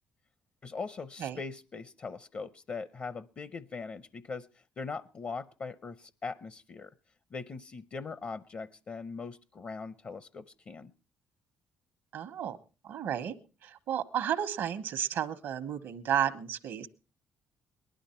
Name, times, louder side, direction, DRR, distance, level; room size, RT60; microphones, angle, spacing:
voice 1, 0.6-4.5 4.8-6.9 7.3-10.9, left 4 dB, 45° left, 17 dB, 0.6 m, -40 dB
voice 2, 12.1-12.6 12.8-13.3 13.6-16.9, right 9 dB, 75° right, 11 dB, 1.1 m, -32 dB
19.0 x 11.5 x 4.4 m, 0.35 s
supercardioid pair, 70°, 4 cm